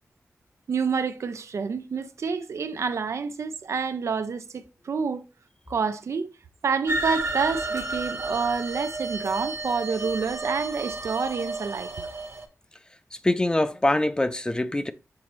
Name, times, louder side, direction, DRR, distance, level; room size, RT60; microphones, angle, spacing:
voice 1, 0.7-5.3 5.7-6.3 6.6-12.1, right 5 dB, 70° right, 0.6 m, -28 dB
sound 1, 6.9-12.5, right 3 dB, 50° right, 1.3 m, -31 dB
voice 2, 13.2-14.9, left 1 dB, 15° left, 0.4 m, -23 dB
7.5 x 4.1 x 3.1 m
wide cardioid pair, 100°, 5 cm